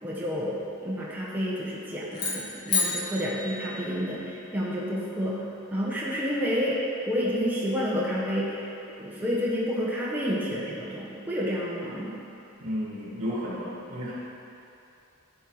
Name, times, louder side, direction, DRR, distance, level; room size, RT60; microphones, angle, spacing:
voice 1, 0.0-5.4 5.7-6.8 7.1-8.7 9.0-12.1, equal, 10° right, -7 dB, 1.1 m, -29 dB
sound 1, 2.1-4.4, left 4 dB, 50° left, 1.5 m, -31 dB
voice 2, 12.6-14.1, equal, 70° right, -7 dB, 1.8 m, -32 dB
11.0 x 4.5 x 4.8 m, 2.8 s
head